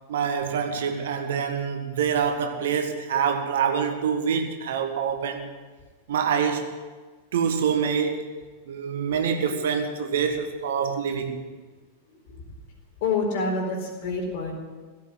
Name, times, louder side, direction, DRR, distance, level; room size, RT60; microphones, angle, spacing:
voice 1, 0.1-5.5 6.1-6.7 7.3-8.2 8.7-11.3, right 7 dB, 60° right, 6 dB, 1.6 m, -26 dB
voice 2, 13.0-14.5, left 3 dB, 50° left, 1 dB, 4.2 m, -27 dB
16.5 x 8.5 x 9.6 m, 1.4 s
figure-of-eight pair, 90°, 0 cm